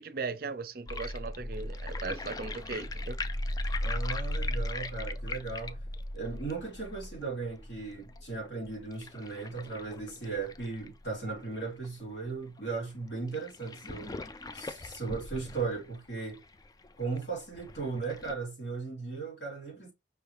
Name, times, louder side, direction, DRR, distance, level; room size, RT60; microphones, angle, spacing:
voice 1, 0.0-3.2, right 4 dB, 55° right, 0.5 m, -38 dB
sound 1, 0.9-11.9 12.3-12.4 12.6-12.7 13.3-18.3, left 1 dB, 20° left, 0.3 m, -37 dB
voice 2, 3.8-5.8 6.1-14.1 14.5-16.4 17.0-19.9, right 4 dB, 85° left, 2.9 m, -37 dB
5.3 x 3.2 x 3.0 m
head